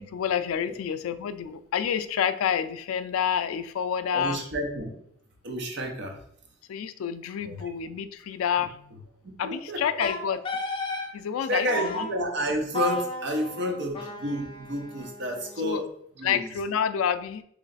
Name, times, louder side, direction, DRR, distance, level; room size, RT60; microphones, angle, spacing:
voice 1, 0.0-4.4 6.7-8.9 9.4-10.4 11.1-12.1 15.6-15.8 16.2-17.4, left 8 dB, 85° left, 12 dB, 0.3 m, -28 dB
voice 2, 4.1-4.9 5.4-6.2 7.4-7.7 9.2-10.3 11.5-15.9 16.2-16.5, equal, 55° right, 2 dB, 0.8 m, -30 dB
Wind instrument woodwind instrument, 10.0-11.1 11.7-12.1 12.7-15.7, left 2 dB, 25° left, 0.5 m, -34 dB
3.1 x 3.1 x 3.9 m, 0.69 s
head